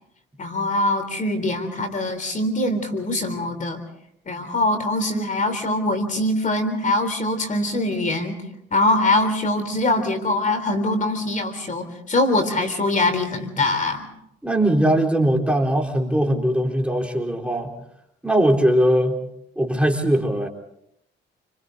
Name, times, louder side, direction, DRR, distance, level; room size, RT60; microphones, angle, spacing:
voice 1, 0.4-3.8 4.3-8.4 8.7-14.1, left 2 dB, 40° left, 9 dB, 3.7 m, -23 dB
voice 2, 14.4-17.7 18.2-19.2 19.6-20.5, right 1 dB, 5° right, 1 dB, 4.0 m, -20 dB
29.0 x 26.5 x 4.1 m, 0.75 s
cardioid pair, 90°, 20 cm